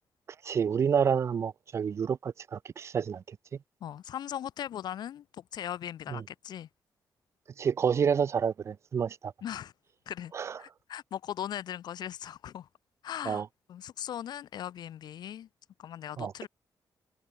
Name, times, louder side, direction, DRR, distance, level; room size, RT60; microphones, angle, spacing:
voice 1, 0.4-3.4 6.1-6.2 7.6-9.3 10.3-10.6 13.3-13.5 16.2-16.5, right 7 dB, 40° right, 0.4 m, -29 dB
voice 2, 3.8-6.7 9.4-9.7 10.1-12.7 13.0-13.4 13.7-15.5 15.8-16.5, left 10 dB, 85° left, 5.7 m, -39 dB
wide cardioid pair, 160°, 7 cm